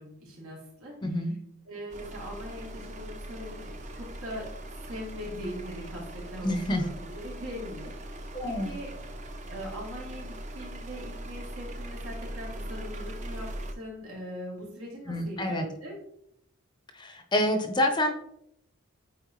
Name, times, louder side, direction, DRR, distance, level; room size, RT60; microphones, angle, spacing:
voice 1, 0.0-1.3 1.7-4.5 4.8-8.9 9.5-16.0, equal, 80° right, -3 dB, 2.8 m, -41 dB
voice 2, 1.0-1.3 6.4-6.9 8.3-8.7 15.1-15.6 16.9-18.1, left 1 dB, 20° left, 5 dB, 0.6 m, -27 dB
sound 1, 1.9-13.7, right 1 dB, 30° right, 0.6 m, -40 dB
9.0 x 4.4 x 3.1 m, 0.75 s
head